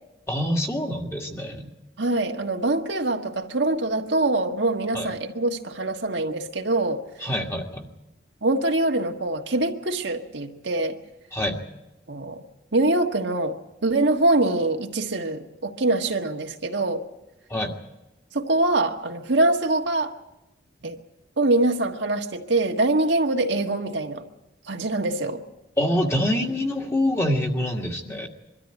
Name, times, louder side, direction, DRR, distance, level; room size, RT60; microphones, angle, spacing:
voice 1, 0.3-1.7 4.9-5.1 7.2-7.9 11.3-11.6 17.5-17.7 25.8-28.3, left 1 dB, 15° left, 2 dB, 1.8 m, -25 dB
voice 2, 2.0-7.0 8.4-11.0 12.1-12.4 12.7-17.0 18.3-20.1 20.8-21.0 21.4-24.2 24.7-25.4, right 2 dB, 80° right, 3 dB, 1.5 m, -24 dB
23.0 x 13.5 x 9.0 m, 0.97 s
head